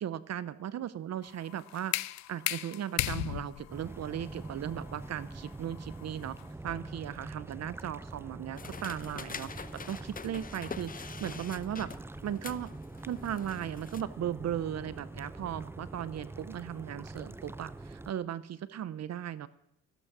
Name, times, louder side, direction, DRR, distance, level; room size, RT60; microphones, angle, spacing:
voice 1, 0.0-1.9 2.3-6.4 6.6-11.9 12.2-12.7 13.1-19.5, right 10 dB, 60° right, 17 dB, 0.7 m, -37 dB
sound 1, 1.2-7.0, left 14 dB, 70° left, 0.5 m, -37 dB
sound 2, 3.7-18.1, right 2 dB, 10° right, 0.4 m, -45 dB
sound 3, 8.5-14.0, left 5 dB, 30° left, 0.8 m, -45 dB
14.0 x 12.0 x 6.0 m, 0.78 s
cardioid pair, 80°, 30 cm